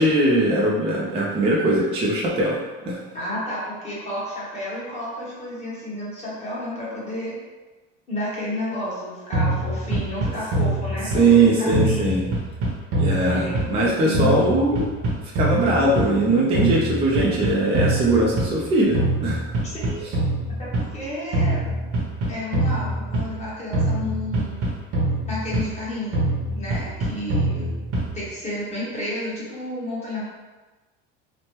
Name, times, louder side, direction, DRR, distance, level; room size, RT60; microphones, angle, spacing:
voice 1, 0.0-3.0 11.1-12.2 13.0-14.9 15.3-19.4, right 2 dB, 20° right, -4 dB, 0.4 m, -20 dB
voice 2, 3.1-7.3 8.1-12.3 13.1-14.5 19.6-20.1 20.6-21.6 22.3-24.6 25.3-26.2 26.5-27.7 28.1-30.2, left 1 dB, 20° left, -7 dB, 1.0 m, -31 dB
sound 1, 9.3-11.4 11.7-13.9 14.1-16.3 16.5-18.6 18.9-20.9 21.3-23.4 23.7-25.8 26.1-28.3, right 1 dB, 45° right, 0.8 m, -24 dB
3.0 x 2.1 x 2.9 m, 1.2 s
cardioid pair, 140°, 31 cm